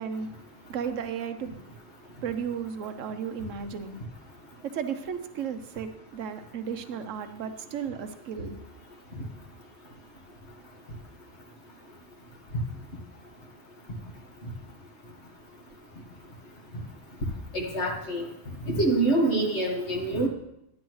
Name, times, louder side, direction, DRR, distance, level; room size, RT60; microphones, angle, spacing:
voice 1, 0.0-1.5 2.2-4.0 4.6-8.6, right 7 dB, 75° right, 9 dB, 1.0 m, -34 dB
voice 2, 17.5-18.3 18.7-20.3, right 2 dB, 55° left, -1 dB, 1.9 m, -25 dB
10.5 x 9.5 x 3.1 m, 0.81 s
omnidirectional pair, 1.4 m